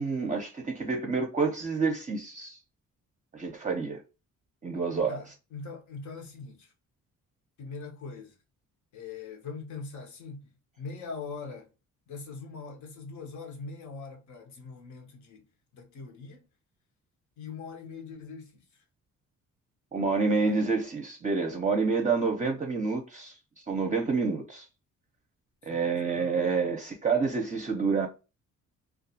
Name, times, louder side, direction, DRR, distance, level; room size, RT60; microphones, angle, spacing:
voice 1, 0.0-2.6 3.3-4.0 4.6-5.2 19.9-23.3 23.7-24.7 25.6-28.1, right 4 dB, 25° right, 0.6 m, -28 dB
voice 2, 5.1-6.7 7.6-8.3 8.9-10.4 10.8-11.7 12.1-15.5 15.7-16.5 17.4-18.6 20.4-20.6 25.6-26.3, left 4 dB, 70° left, 1.0 m, -42 dB
2.4 x 2.3 x 2.7 m
cardioid pair, 90°, 30 cm